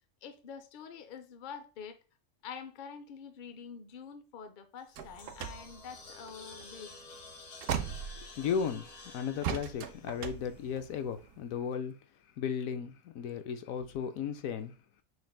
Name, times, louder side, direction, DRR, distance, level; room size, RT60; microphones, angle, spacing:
voice 1, 0.2-2.0 2.4-7.0, left 6 dB, 50° left, 0.6 m, -46 dB
sound 1, 4.8-11.1, left 3 dB, 70° left, 1.3 m, -51 dB
sound 2, 5.0-8.8 9.4-11.4, right 8 dB, 75° right, 0.9 m, -39 dB
voice 2, 8.4-8.9 9.1-11.9 12.4-14.8, left 7 dB, 90° left, 1.1 m, -35 dB
6.4 x 3.3 x 2.3 m
omnidirectional pair, 1.4 m